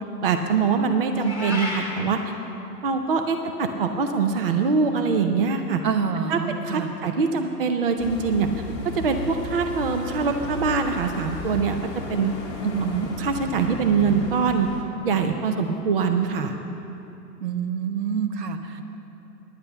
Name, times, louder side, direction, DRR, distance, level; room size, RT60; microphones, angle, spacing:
voice 1, 0.2-2.2 2.8-5.8 6.3-8.5 8.8-11.8 12.1-12.3 13.2-14.7 15.0-16.5, right 5 dB, 35° right, 6 dB, 0.5 m, -23 dB
Meow, 1.1-1.9, left 1 dB, 10° right, 1.6 m, -30 dB
voice 2, 5.8-6.9 12.6-13.1 17.4-18.8, right 7 dB, 75° right, 7 dB, 1.2 m, -27 dB
sound 1, 8.0-14.8, left 1 dB, 10° left, 1.2 m, -34 dB
10.5 x 8.5 x 7.8 m, 2.9 s
hypercardioid pair, 155°, 50 cm